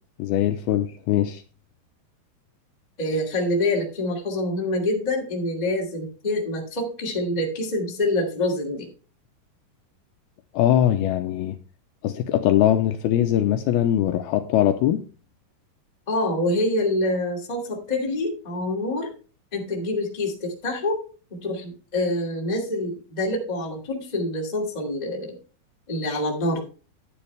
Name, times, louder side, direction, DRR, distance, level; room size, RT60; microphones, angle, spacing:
voice 1, 0.2-1.4 10.5-11.6 12.0-15.0, left 12 dB, 80° left, 2.4 m, -21 dB
voice 2, 3.0-8.9 16.1-19.1 19.5-21.0 21.3-25.3 25.9-26.6, left 1 dB, 15° left, 1.5 m, -26 dB
10.5 x 9.7 x 3.3 m
omnidirectional pair, 4.9 m